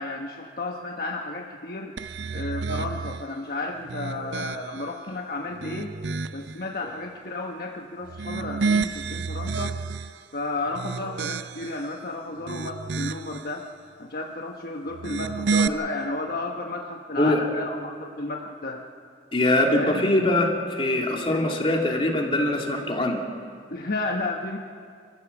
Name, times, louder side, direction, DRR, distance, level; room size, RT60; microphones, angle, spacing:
voice 1, 0.0-1.9 2.3-6.0 6.3-9.8 10.3-13.7 14.0-18.9 19.7-20.0 23.7-24.6, left 2 dB, 60° left, 2 dB, 1.2 m, -32 dB
sound 1, 2.0-3.3 3.8-4.9 5.4-6.5 8.0-10.2 10.7-11.8 12.3-13.4 14.9-15.7, right 4 dB, 90° right, 0.6 m, -30 dB
voice 2, 19.3-23.2, left 1 dB, 30° left, 0 dB, 2.7 m, -22 dB
27.5 x 15.0 x 7.2 m, 2.2 s
head